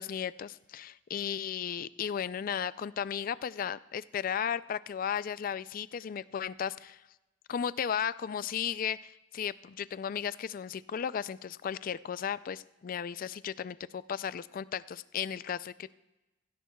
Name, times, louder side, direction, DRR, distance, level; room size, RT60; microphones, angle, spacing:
voice 1, 0.0-7.0 7.5-15.9, left 8 dB, 45° left, 17 dB, 0.3 m, -35 dB
16.5 x 16.5 x 2.3 m, 1.0 s
head